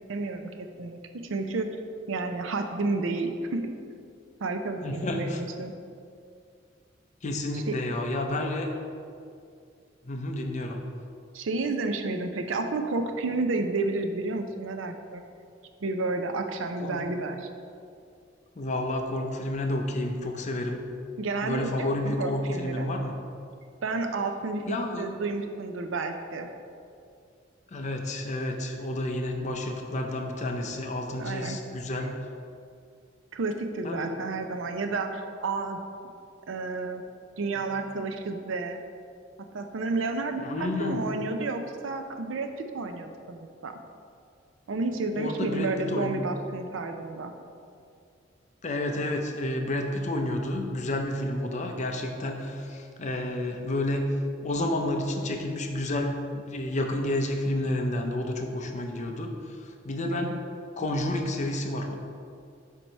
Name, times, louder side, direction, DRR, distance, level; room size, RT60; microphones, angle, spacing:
voice 1, 0.1-1.7 2.1-3.8 4.4-5.7 7.5-7.8 11.3-15.2 15.8-17.5 21.2-22.9 23.8-26.5 31.2-31.6 32.0-32.1 33.3-35.8 36.5-37.0 37.4-38.8 39.4-43.8 44.7-47.3 60.1-60.4, right 3 dB, 80° right, 6 dB, 0.5 m, -31 dB
voice 2, 4.8-5.5 7.2-8.7 10.0-10.8 16.8-17.0 18.6-20.8 21.4-23.1 24.7-25.1 27.7-32.1 33.8-34.1 34.4-34.5 37.6-37.7 40.4-41.0 45.1-46.2 48.6-54.0 54.4-59.3 59.6-60.4 60.8-62.0, left 1 dB, 40° left, 3 dB, 0.6 m, -30 dB
4.6 x 4.4 x 5.3 m, 2.4 s
head